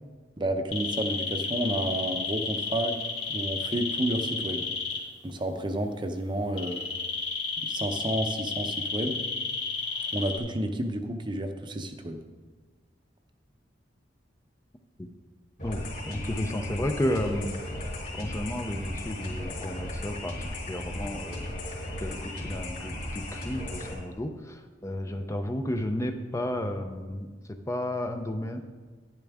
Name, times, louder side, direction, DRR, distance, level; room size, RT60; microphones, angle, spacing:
voice 1, 0.4-3.0 3.3-4.7 5.2-6.8 7.6-9.2 10.1-12.2, right 1 dB, 25° right, 6 dB, 0.7 m, -30 dB
sound 1, 0.7-5.0 6.6-10.4, left 4 dB, 85° left, 2.2 m, -31 dB
sound 2, 15.6-23.9, left 1 dB, 45° left, 3.0 m, -36 dB
voice 2, 15.6-17.6 18.1-21.5 22.0-28.6, left 1 dB, 15° left, 6 dB, 0.5 m, -32 dB
10.5 x 10.5 x 3.5 m, 1.4 s
head